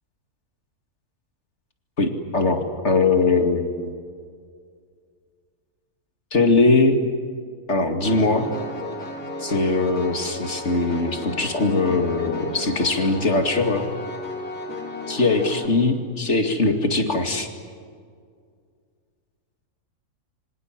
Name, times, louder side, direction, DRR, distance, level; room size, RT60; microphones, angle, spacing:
voice 1, 2.0-3.9 6.3-7.0 7.7-8.5 9.4-13.9 15.1-17.5, left 3 dB, 45° left, 5 dB, 2.6 m, -21 dB
Piano, 8.0-15.7, left 2 dB, 75° left, 4.6 m, -33 dB
27.5 x 25.0 x 7.6 m, 2.1 s
omnidirectional pair, 1.6 m